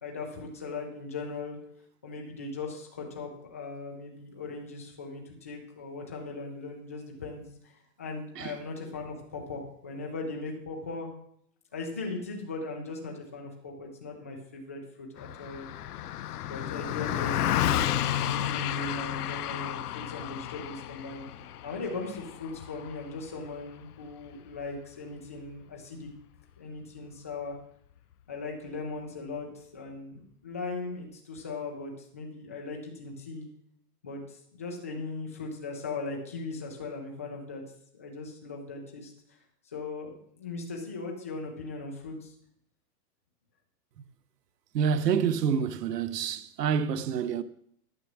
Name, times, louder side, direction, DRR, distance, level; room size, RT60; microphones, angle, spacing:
voice 1, 0.0-1.6 2.0-11.1 11.7-15.7 16.5-21.3 21.6-26.1 26.6-27.6 28.3-33.5 34.0-37.6 37.9-39.1 39.7-42.3, left 3 dB, 10° left, 0.4 m, -39 dB
Car passing by, 15.2-24.8, left 11 dB, 75° left, 0.8 m, -32 dB
voice 2, 44.7-47.4, right 7 dB, 85° right, 1.0 m, -27 dB
12.5 x 6.1 x 7.2 m
hypercardioid pair, 170°, 47 cm